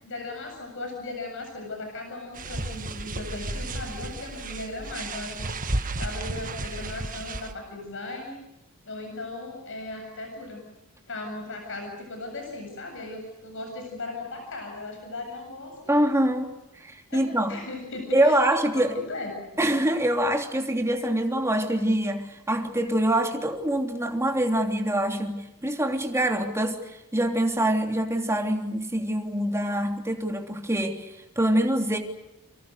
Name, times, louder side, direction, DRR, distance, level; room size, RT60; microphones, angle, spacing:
voice 1, 0.0-8.4 8.8-10.6 11.1-16.0 17.1-17.2 17.5-18.4 18.7-19.6, left 2 dB, 60° left, 3 dB, 7.8 m, -37 dB
sound 1, 2.3-7.5, right 2 dB, 40° right, 1.7 m, -33 dB
voice 2, 15.9-16.5 16.8-17.6 18.1-18.9 19.6-32.0, right 1 dB, 10° right, 3 dB, 3.2 m, -25 dB
29.0 x 25.5 x 6.6 m, 0.91 s
head